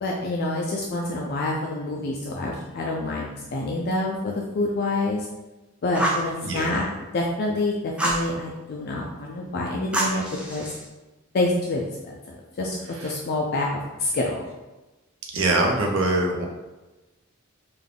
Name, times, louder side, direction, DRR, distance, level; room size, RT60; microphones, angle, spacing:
voice 1, 0.0-5.3 5.8-6.8 7.1-10.7 11.3-14.4, left 2 dB, 50° left, -2 dB, 0.4 m, -27 dB
Fire, 5.9-6.3 8.0-8.3 9.9-10.8, right 1 dB, 5° right, 0.5 m, -26 dB
voice 2, 6.4-6.8 13.0-13.1 15.3-16.5, right 2 dB, 65° right, 0 dB, 0.7 m, -23 dB
3.4 x 2.3 x 3.7 m, 1.1 s
head